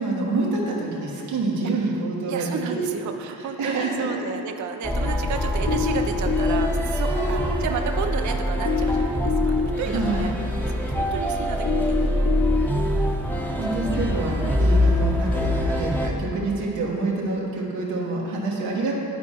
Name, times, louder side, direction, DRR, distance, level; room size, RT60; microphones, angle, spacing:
voice 1, 0.0-2.9 3.3-4.3 7.1-7.6 9.9-10.3 13.3-18.9, right 3 dB, 80° right, -3 dB, 1.3 m, -27 dB
voice 2, 2.3-10.3 10.9-12.5, right 6 dB, 40° right, 6 dB, 0.5 m, -32 dB
sound 1, 4.8-16.1, equal, 5° left, 0.8 m, -24 dB
sound 2, 5.7-6.7 8.7-9.7 11.7-12.7, left 7 dB, 50° left, 0.6 m, -24 dB
11.5 x 4.4 x 2.9 m, 2.8 s
hypercardioid pair, 40°, 48 cm